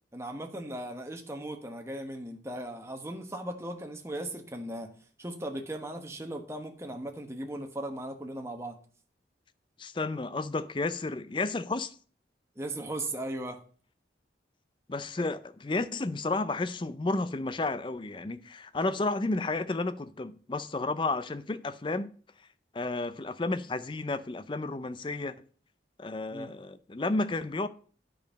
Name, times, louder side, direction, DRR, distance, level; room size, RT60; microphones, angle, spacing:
voice 1, 0.1-4.9 5.2-8.8 12.6-13.6 15.2-15.3 26.3-26.5, right 1 dB, 15° right, 1.1 m, -37 dB
voice 2, 9.8-11.9 14.9-22.1 22.7-25.4 26.0-27.7, left 2 dB, 25° left, 0.4 m, -32 dB
9.6 x 5.3 x 5.2 m
head